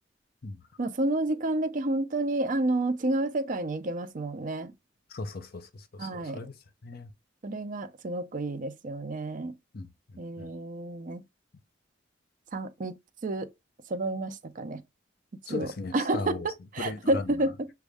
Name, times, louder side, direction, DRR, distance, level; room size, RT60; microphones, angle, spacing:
voice 1, 0.8-4.7 6.0-6.5 7.4-9.5 10.2-11.2 12.5-13.0 13.2-13.5 13.9-14.8 15.5-17.7, right 2 dB, 45° right, 0.5 m, -30 dB
voice 2, 5.1-6.5 6.8-7.1 9.7-10.5 15.5-16.5 16.8-17.4, left 3 dB, 55° left, 0.7 m, -38 dB
6.1 x 2.2 x 3.4 m
head